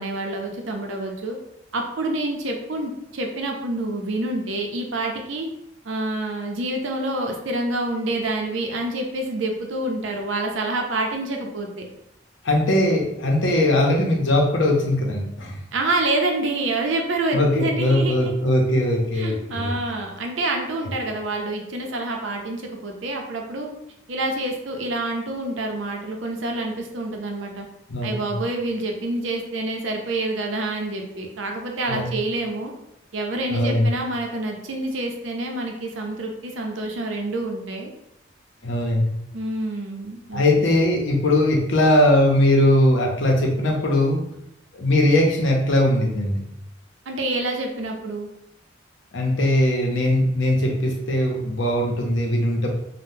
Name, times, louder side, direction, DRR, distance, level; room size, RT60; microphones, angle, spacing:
voice 1, 0.0-1.4 1.7-5.5 5.8-11.9 15.7-18.3 19.1-23.7 24.1-27.7 28.0-32.7 33.1-37.9 39.3-40.6 47.1-48.3, right 2 dB, 80° right, 2 dB, 0.6 m, -27 dB
voice 2, 12.4-15.6 17.3-19.7 27.9-28.3 31.9-32.0 33.5-33.9 38.6-39.1 40.3-44.2 44.7-46.4 49.1-52.7, left 1 dB, 75° left, 0 dB, 0.7 m, -20 dB
3.5 x 2.1 x 2.7 m, 0.80 s
head